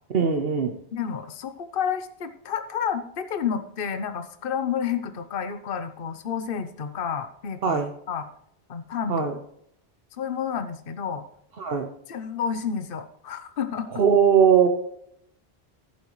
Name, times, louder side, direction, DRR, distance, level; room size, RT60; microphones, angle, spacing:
voice 1, 0.1-0.7 7.6-7.9 9.1-9.3 11.6-11.9 13.9-14.7, right 7 dB, 65° right, 4 dB, 1.2 m, -20 dB
voice 2, 0.9-7.8 8.1-8.3 8.7-9.3 10.2-11.2 12.1-14.0, left 7 dB, 60° left, 9 dB, 1.0 m, -30 dB
14.5 x 8.8 x 3.1 m, 0.71 s
omnidirectional pair, 1.1 m